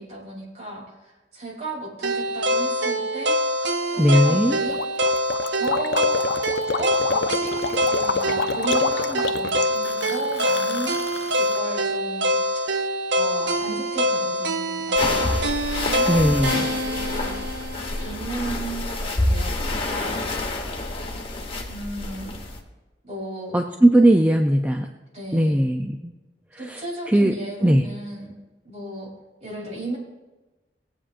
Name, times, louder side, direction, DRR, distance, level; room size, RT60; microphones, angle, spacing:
voice 1, 0.0-3.4 3.8-4.8 5.6-6.2 6.8-11.0 11.3-12.8 13.1-15.4 15.8-17.5 17.8-20.2 21.7-22.4 23.0-23.6 25.1-25.7 26.6-28.3 28.6-29.1 29.4-30.0, right 1 dB, 40° right, -3 dB, 3.1 m, -34 dB
sound 1, 2.0-18.1, equal, 75° right, 0.6 m, -25 dB
voice 2, 4.0-4.6 16.1-16.7 23.5-24.9 25.3-26.1 26.5-27.3 27.6-27.8, right 1 dB, 10° right, 4 dB, 0.4 m, -19 dB
Gurgling, 4.7-11.6, left 5 dB, 65° left, 0.5 m, -28 dB
sound 2, 15.0-22.6, left 2 dB, 30° left, 1.3 m, -28 dB
18.5 x 8.6 x 2.5 m, 1.1 s
head